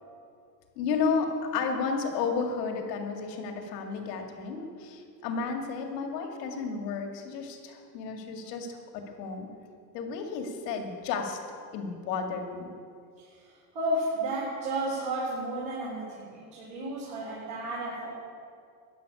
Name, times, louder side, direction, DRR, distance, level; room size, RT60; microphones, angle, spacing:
voice 1, 0.8-9.5 9.9-11.4 11.7-12.7, left 5 dB, 80° left, 3 dB, 2.1 m, -32 dB
voice 2, 13.2-18.1, right 1 dB, 50° right, -7 dB, 4.1 m, -33 dB
13.5 x 6.0 x 9.8 m, 2.3 s
supercardioid pair, 115°, 48 cm